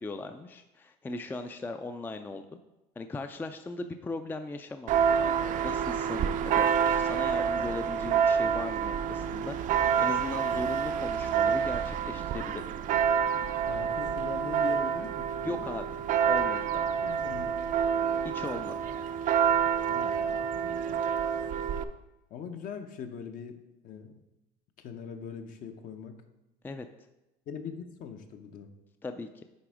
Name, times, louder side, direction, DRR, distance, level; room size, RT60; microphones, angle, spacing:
voice 1, 0.0-2.5 3.0-4.9 5.6-9.6 10.0-12.6 15.4-15.9 16.2-16.9 18.2-18.8 26.6-26.9 29.0-29.3, left 3 dB, 10° left, 8 dB, 0.4 m, -38 dB
Church bell, 4.9-21.8, right 7 dB, 55° right, 0.5 m, -28 dB
voice 2, 13.7-15.7 17.0-17.5 19.9-20.3 22.3-24.1 24.8-26.2 27.5-28.7, left 7 dB, 55° left, 6 dB, 0.8 m, -41 dB
9.6 x 3.4 x 4.9 m, 0.96 s
cardioid pair, 120°, 16 cm